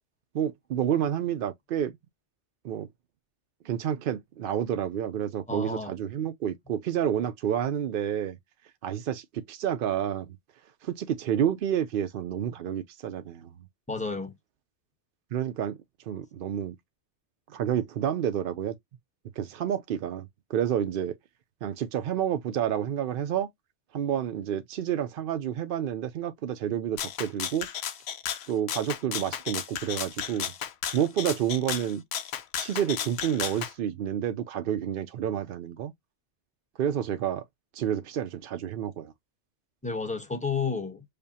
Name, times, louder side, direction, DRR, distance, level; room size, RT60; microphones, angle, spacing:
voice 1, 0.3-1.9 2.6-2.9 3.6-8.4 8.8-10.4 10.8-13.5 15.3-15.8 16.1-16.8 17.5-18.8 19.4-21.2 21.6-23.5 23.9-27.7 28.5-30.5 30.9-32.0 32.6-35.9 36.8-37.4 37.7-39.1, right 9 dB, 60° right, 0.6 m, -29 dB
voice 2, 5.5-5.9 13.9-14.3 39.8-41.0, left 4 dB, 5° left, 0.9 m, -31 dB
Rattle (instrument), 27.0-33.7, left 9 dB, 65° left, 0.9 m, -34 dB
5.1 x 2.1 x 2.7 m
omnidirectional pair, 1.2 m